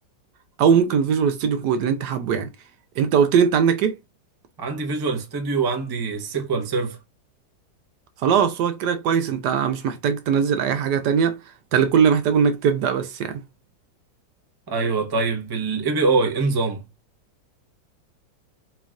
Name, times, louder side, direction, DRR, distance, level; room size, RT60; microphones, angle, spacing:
voice 1, 0.6-2.5 3.0-4.0 8.2-11.4 11.7-13.4, right 7 dB, 70° right, 1.1 m, -20 dB
voice 2, 4.6-7.0 14.7-16.8, right 4 dB, 25° right, 0.5 m, -24 dB
4.4 x 3.0 x 2.4 m
omnidirectional pair, 2.0 m